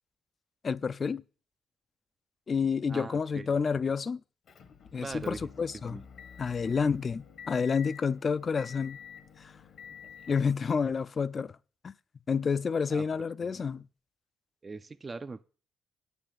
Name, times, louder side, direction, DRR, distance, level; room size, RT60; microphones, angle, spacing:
voice 1, 0.6-1.2 2.5-4.2 4.9-6.0 6.4-9.0 10.3-11.5 11.8-11.9 12.3-13.8, left 5 dB, 40° left, 0.4 m, -29 dB
voice 2, 2.9-3.5 5.0-5.5 5.7-6.0 6.6-6.7 10.2-10.3 12.9-13.1 13.4-13.6 14.6-15.4, right 3 dB, 30° right, 0.4 m, -41 dB
Motor vehicle (road) / Engine, 4.5-10.6, left 7 dB, 65° left, 1.2 m, -49 dB
8.8 x 7.0 x 7.4 m
cardioid pair, 90°, 0 cm